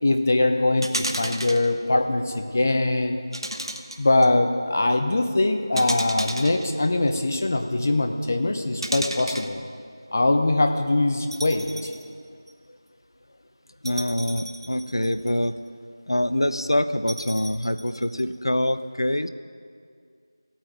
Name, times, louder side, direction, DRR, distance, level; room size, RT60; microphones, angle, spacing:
voice 1, 0.0-3.2 4.0-9.6 10.1-11.9, left 2 dB, 30° left, 6 dB, 0.7 m, -22 dB
sound 1, 0.8-1.7 3.3-4.3 5.8-7.2 8.8-9.5 11.3-12.1 12.5-12.6 13.9-15.5 17.1-18.2, right 1 dB, 80° right, 1.0 m, -33 dB
voice 2, 13.8-15.5 16.1-19.3, left 1 dB, 75° left, 11 dB, 0.6 m, -25 dB
17.0 x 8.8 x 3.7 m, 2.2 s
figure-of-eight pair, 170°, 2 cm